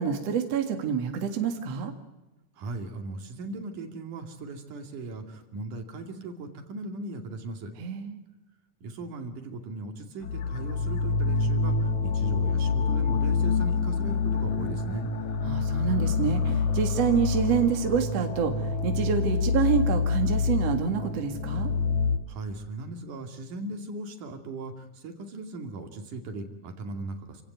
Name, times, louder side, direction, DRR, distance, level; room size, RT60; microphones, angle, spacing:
voice 1, 0.0-1.9 7.8-8.2 15.5-21.7, right 7 dB, 55° right, 5 dB, 2.9 m, -27 dB
voice 2, 2.5-7.7 8.8-15.1 22.3-27.4, right 2 dB, 75° right, 5 dB, 4.0 m, -38 dB
sound 1, 10.2-22.2, left 4 dB, 65° left, 3.2 m, -26 dB
29.0 x 17.0 x 9.4 m, 1.1 s
omnidirectional pair, 3.6 m